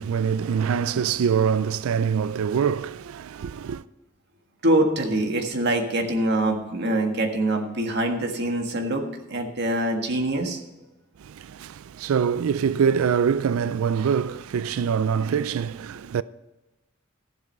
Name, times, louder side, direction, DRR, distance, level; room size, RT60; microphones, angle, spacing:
voice 1, 0.0-3.8 11.2-16.2, right 7 dB, 90° right, 0.4 m, -24 dB
voice 2, 4.6-9.0 9.3-10.6, right 1 dB, 55° right, 1.7 m, -24 dB
13.0 x 7.8 x 5.5 m
head